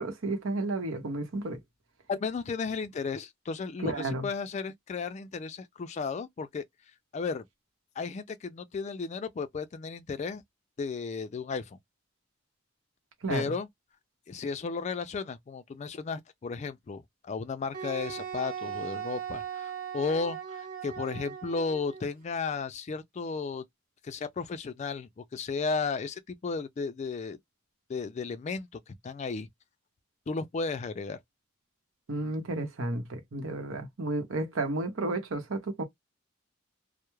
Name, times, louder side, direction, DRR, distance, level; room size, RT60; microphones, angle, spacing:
voice 1, 0.0-1.6 3.8-4.3 13.2-13.5 32.1-35.8, right 2 dB, 85° right, 0.8 m, -32 dB
voice 2, 2.1-6.6 7.1-7.4 8.0-10.4 10.8-11.6 13.3-13.7 14.3-23.6 24.0-27.4 27.9-29.5 30.3-31.2, left 4 dB, 35° left, 0.3 m, -34 dB
Wind instrument woodwind instrument, 17.7-22.0, right 8 dB, 45° right, 0.9 m, -38 dB
2.2 x 2.0 x 3.0 m
head